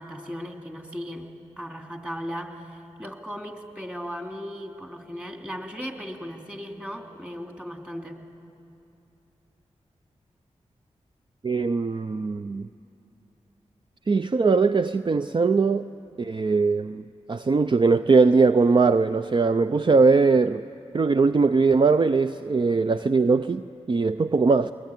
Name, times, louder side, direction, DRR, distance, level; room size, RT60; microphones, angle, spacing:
voice 1, 0.0-8.2, equal, 10° right, 2.8 m, -37 dB
voice 2, 11.4-12.7 14.1-15.9 16.2-20.7 20.9-24.7, right 4 dB, 40° right, 0.5 m, -21 dB
21.0 x 20.0 x 9.3 m
cardioid pair, 45°, 12 cm